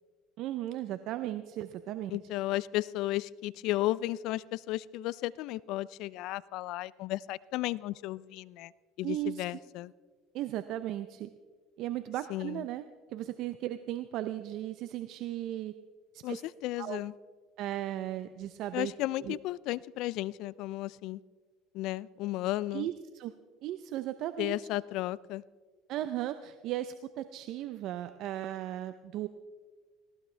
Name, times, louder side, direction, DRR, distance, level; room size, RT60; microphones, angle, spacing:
voice 1, 0.4-2.2 9.0-9.4 10.3-11.3 11.8-12.8 13.1-15.7 16.1-16.4 16.8-17.0 17.6-18.9 19.2-19.4 22.7-23.3 23.6-24.6 25.9-29.3, right 13 dB, 60° right, 11 dB, 0.6 m, -36 dB
voice 2, 2.1-8.7 9.0-9.9 12.3-12.6 16.2-17.1 18.7-21.2 21.7-22.9 24.4-25.4, left 16 dB, 65° left, 21 dB, 0.3 m, -34 dB
19.0 x 18.0 x 3.3 m, 1.5 s
supercardioid pair, 105°, 0 cm